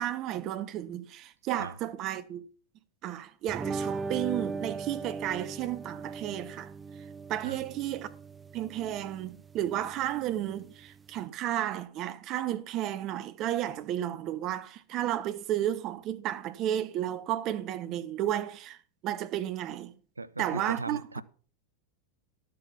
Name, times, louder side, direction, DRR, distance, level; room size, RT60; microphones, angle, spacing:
voice 1, 0.0-2.5 3.0-6.7 7.3-8.1 8.5-18.8 19.0-19.9 20.4-21.2, right 12 dB, 35° right, 1.0 m, -33 dB
sound 1, 3.5-11.2, right 4 dB, 15° right, 0.5 m, -39 dB
voice 2, 20.2-21.2, right 3 dB, 80° right, 0.5 m, -38 dB
12.0 x 7.8 x 5.6 m
figure-of-eight pair, 90°, 0 cm